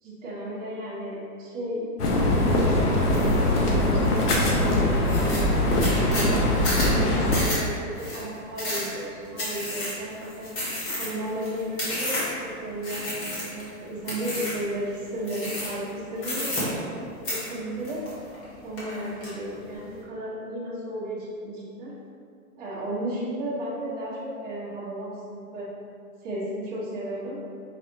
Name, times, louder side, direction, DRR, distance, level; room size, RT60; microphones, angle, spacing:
voice 1, 0.0-5.4 6.0-10.5 11.0-18.0 18.6-21.9 22.6-25.7 26.2-27.4, right 1 dB, 20° right, -10 dB, 1.0 m, -34 dB
sound 1, 2.0-7.4, left 1 dB, 90° left, 0.9 m, -22 dB
sound 2, 3.1-3.4 3.8-4.3 4.7-4.8 5.0-12.4 12.8-13.7 14.0-14.7 15.2-15.9 16.2-17.0 17.2-18.4 18.8-19.3, left 1 dB, 30° left, 1.4 m, -32 dB
5.0 x 3.2 x 2.7 m, 2.3 s
hypercardioid pair, 140°, 45 cm